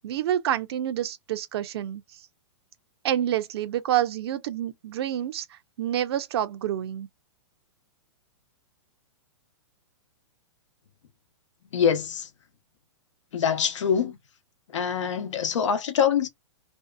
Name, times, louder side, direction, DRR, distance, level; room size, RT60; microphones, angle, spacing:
voice 1, 0.0-2.0 3.0-7.1, right 11 dB, 55° right, 0.5 m, -28 dB
voice 2, 11.7-12.3 13.3-14.2 14.7-16.3, left 7 dB, 85° left, 0.8 m, -24 dB
2.7 x 2.4 x 2.2 m
hypercardioid pair, 150°, 15 cm